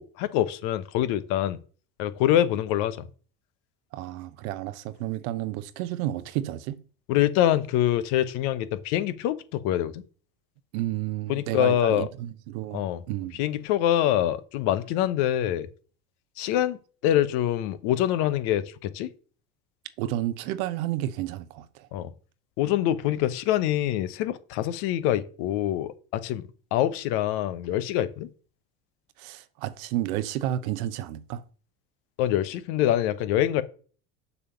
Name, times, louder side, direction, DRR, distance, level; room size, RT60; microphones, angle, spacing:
voice 1, 0.0-1.6 2.0-3.1 7.1-10.0 11.3-12.1 12.7-13.0 13.4-15.7 16.4-19.1 21.9-22.1 22.6-26.4 26.7-28.3 32.2-33.6, left 12 dB, 65° left, 1.0 m, -25 dB
voice 2, 3.9-6.8 10.7-13.4 20.0-21.9 29.2-31.4, right 14 dB, 75° right, 0.9 m, -31 dB
6.9 x 5.1 x 7.0 m
hypercardioid pair, 75°, 42 cm